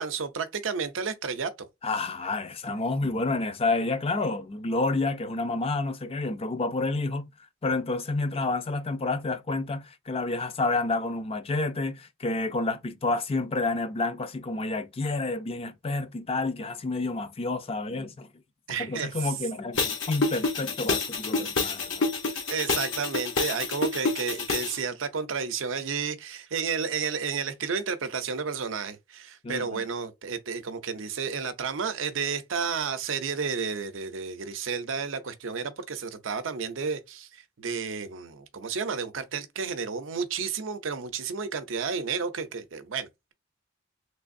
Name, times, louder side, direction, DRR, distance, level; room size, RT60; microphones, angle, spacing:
voice 1, 0.0-1.7 18.7-19.3 22.3-43.3, right 5 dB, 70° right, 0.6 m, -32 dB
voice 2, 1.8-7.3 7.6-18.3 18.8-22.1 29.4-29.8, left 3 dB, 30° left, 0.4 m, -29 dB
sound 1, 19.7-24.8, left 3 dB, 65° left, 0.8 m, -28 dB
3.3 x 3.1 x 2.6 m
head